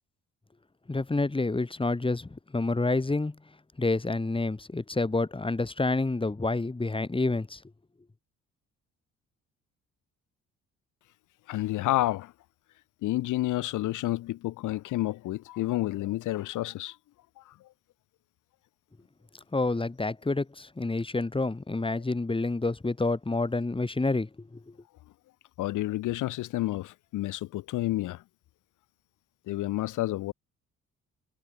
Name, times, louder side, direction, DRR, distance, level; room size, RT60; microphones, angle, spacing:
voice 1, 0.9-3.4 3.8-7.6 19.5-24.6, left 3 dB, 15° left, 3.6 m, -28 dB
voice 2, 11.5-12.3 13.0-17.0 17.4-17.5 25.6-28.2 29.5-30.3, left 16 dB, 80° left, 0.9 m, -30 dB
cardioid pair, 90°, 30 cm